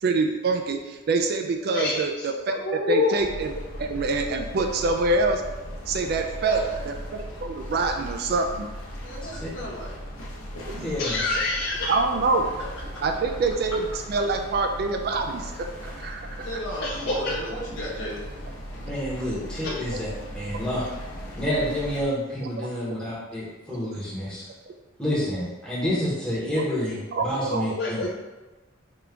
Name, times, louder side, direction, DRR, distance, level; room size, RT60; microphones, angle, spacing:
voice 1, 0.0-2.6 2.9-3.5 3.8-5.4 5.9-8.7 10.7-10.9 11.9-12.5 13.0-16.5 26.5-26.6 27.1-27.8, right 3 dB, 50° right, 4 dB, 0.3 m, -26 dB
voice 2, 1.7-2.3 2.6-3.1 11.0-11.9 16.8-17.3 27.8-28.1, left 3 dB, 50° left, -3 dB, 0.4 m, -26 dB
sound 1, 3.2-22.1, equal, 90° left, 0.7 m, -38 dB
voice 3, 6.2-6.8 9.0-9.9 12.9-13.0 16.4-18.3, equal, 70° left, -5 dB, 1.0 m, -35 dB
voice 4, 10.8-11.2 18.8-20.1 20.3-20.9 21.4-24.4 25.0-28.0, equal, 5° left, -8 dB, 1.0 m, -28 dB
3.7 x 2.4 x 3.3 m, 1.2 s
head